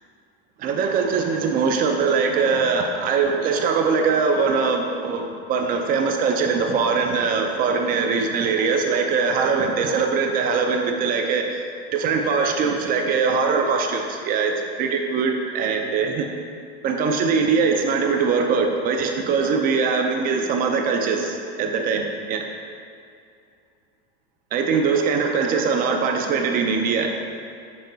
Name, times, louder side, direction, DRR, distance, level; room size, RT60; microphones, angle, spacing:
voice 1, 0.6-11.6 11.9-16.3 16.8-22.5 24.5-27.3, right 5 dB, 25° right, 3 dB, 0.5 m, -22 dB
6.7 x 4.0 x 4.0 m, 2.4 s
supercardioid pair, 150°, 34 cm